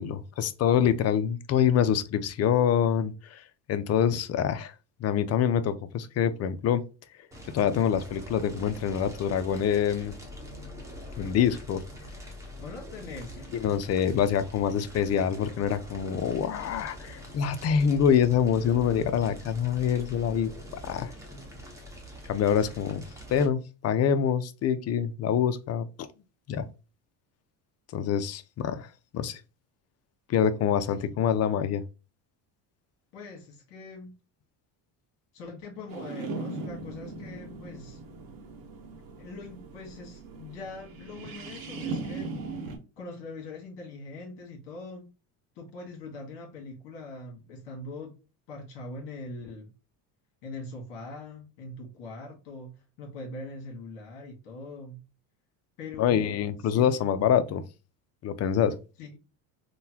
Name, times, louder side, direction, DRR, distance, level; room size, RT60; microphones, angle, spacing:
voice 1, 0.0-3.4 3.7-4.7 5.0-6.8 7.5-10.1 11.2-11.8 13.5-20.5 20.8-21.1 22.3-23.0 23.3-26.1 26.5-26.7 27.9-29.4 30.3-31.8 56.0-57.6 58.2-58.8, left 8 dB, 35° left, 0.4 m, -25 dB
Fire, 7.3-23.5, left 1 dB, 5° right, 1.0 m, -44 dB
voice 2, 12.6-13.6 30.9-31.2 33.1-34.1 35.3-38.0 39.2-45.1 45.5-48.2 48.5-49.7 50.4-55.0 55.8-57.0 59.0-59.2, left 3 dB, 70° left, 1.4 m, -42 dB
sound 1, 35.9-42.8, right 3 dB, 50° right, 1.0 m, -39 dB
3.8 x 2.2 x 2.8 m
supercardioid pair, 105°, 44 cm